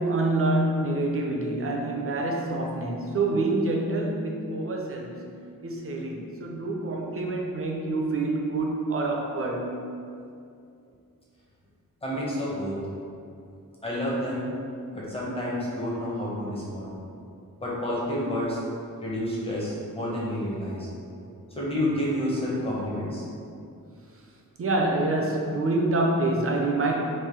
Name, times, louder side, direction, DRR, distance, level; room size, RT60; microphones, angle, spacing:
voice 1, 0.0-9.9 24.6-26.9, right 2 dB, 40° right, -1 dB, 0.5 m, -27 dB
voice 2, 12.0-12.8 13.8-14.5 14.9-16.9 17.6-18.6 19.0-20.9 21.6-23.2, left 1 dB, 15° left, -5 dB, 0.7 m, -29 dB
3.2 x 2.5 x 3.6 m, 2.5 s
wide cardioid pair, 135°, 35 cm